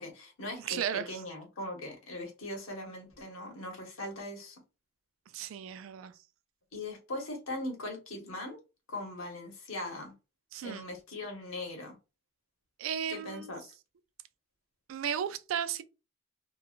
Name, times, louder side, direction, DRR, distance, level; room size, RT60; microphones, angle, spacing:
voice 1, 0.0-4.6 6.7-8.6 8.9-10.1 10.6-11.9 13.1-13.6, left 1 dB, 85° left, 1.1 m, -40 dB
voice 2, 0.6-1.2 5.3-6.1 10.5-10.8 12.8-13.5 14.9-15.8, right 8 dB, 80° right, 0.3 m, -34 dB
3.0 x 2.3 x 2.4 m
head